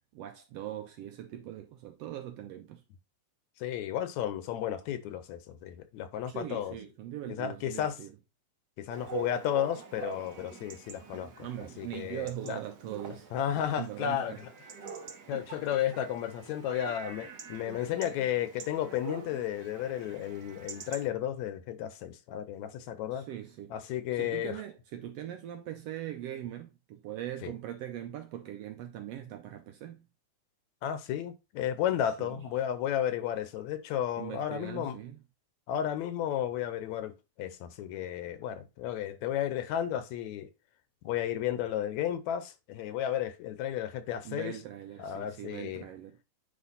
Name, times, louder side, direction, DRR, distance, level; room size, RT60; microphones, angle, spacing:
voice 1, 0.1-2.8 6.3-8.1 11.4-13.3 13.6-14.4 23.1-23.8 24.1-30.1 32.2-32.5 34.2-35.2 44.2-46.2, right 11 dB, 75° right, 1.5 m, -41 dB
voice 2, 3.6-6.8 7.3-8.0 8.8-11.5 11.8-12.6 13.3-14.5 15.3-23.3 23.7-24.6 27.4-27.5 30.8-35.0 35.7-40.5 41.0-44.6 45.0-45.9, left 10 dB, 80° left, 2.0 m, -33 dB
Chatter / Bark / Livestock farm animals working animals, 8.9-21.1, right 6 dB, 55° right, 1.1 m, -45 dB
9.6 x 3.4 x 4.0 m
omnidirectional pair, 3.4 m